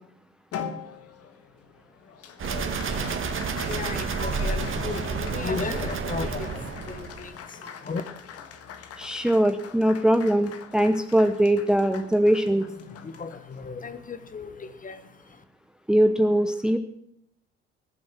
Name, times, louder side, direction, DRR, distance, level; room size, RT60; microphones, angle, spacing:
Applause, 0.5-15.2, left 7 dB, 45° left, 1.6 m, -42 dB
sound 1, 2.4-7.4, right 5 dB, 35° right, 1.7 m, -30 dB
voice 1, 2.9-8.0 12.8-15.4, left 4 dB, 25° left, 11 dB, 1.4 m, -36 dB
voice 2, 9.0-12.6 15.9-16.8, right 1 dB, ahead, 9 dB, 0.9 m, -21 dB
20.0 x 7.7 x 7.6 m, 0.75 s
figure-of-eight pair, 60°, 33 cm